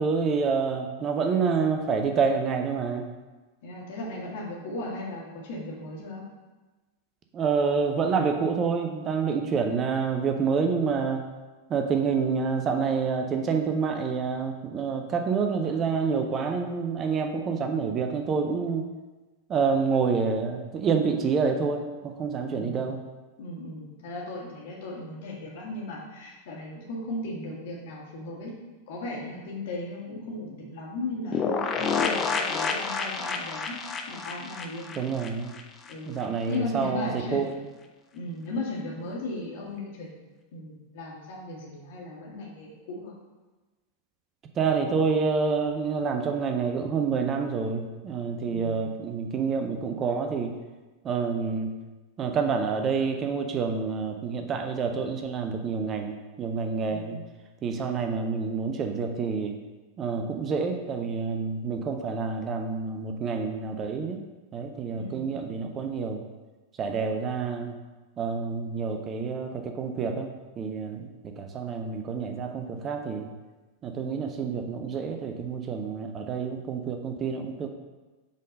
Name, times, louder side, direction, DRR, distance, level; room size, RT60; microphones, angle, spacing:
voice 1, 0.0-3.1 7.3-11.3 11.7-18.9 19.5-23.0 35.0-35.5 36.1-37.5 44.5-50.6 51.0-51.7 52.2-57.2 57.6-59.6 60.0-64.2 64.5-66.3 66.8-67.8 68.2-73.3 73.8-77.7, right 5 dB, 30° right, 5 dB, 0.5 m, -28 dB
voice 2, 3.6-6.2 22.5-22.9 23.4-28.5 28.9-33.7 34.1-35.0 35.9-37.6 38.1-40.2 40.5-43.2 48.4-48.9 56.9-57.3 64.9-65.4, left 2 dB, 50° left, -3 dB, 1.8 m, -36 dB
sound 1, 31.3-35.9 36.2-36.3 36.5-36.6, left 5 dB, 25° left, 0.6 m, -29 dB
5.2 x 3.9 x 5.1 m, 1.2 s
figure-of-eight pair, 90°, 0 cm